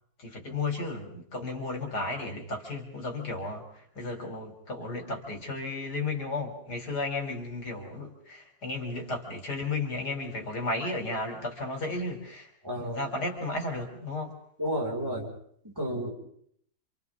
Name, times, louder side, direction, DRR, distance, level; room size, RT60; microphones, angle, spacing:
voice 1, 0.2-12.5 12.8-14.4, left 2 dB, 80° left, 3 dB, 3.9 m, -34 dB
voice 2, 12.6-13.0 14.6-15.3 15.6-16.1, equal, 15° right, -3 dB, 5.0 m, -31 dB
29.0 x 27.0 x 3.6 m, 0.65 s
omnidirectional pair, 1.7 m